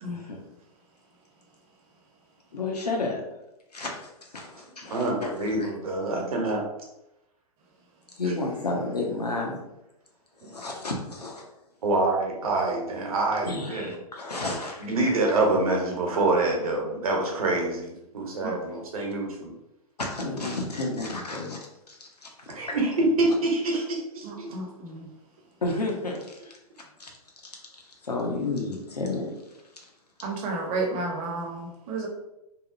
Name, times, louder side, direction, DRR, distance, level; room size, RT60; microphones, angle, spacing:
voice 1, 0.1-0.4 2.5-3.2 3.7-5.7 8.2-9.6 10.3-11.4 13.4-15.2 20.0-22.8 25.6-26.6 27.0-27.2 27.4-29.9, left 2 dB, 85° left, 0 dB, 0.6 m, -32 dB
voice 2, 4.9-6.6 10.4-10.5 11.8-13.9 14.8-19.5 22.5-24.5, right 2 dB, 65° right, 0 dB, 0.8 m, -26 dB
voice 3, 24.2-25.1 30.2-32.1, right 3 dB, 25° right, 0 dB, 0.6 m, -32 dB
2.7 x 2.0 x 2.4 m, 0.90 s
figure-of-eight pair, 110°, 20 cm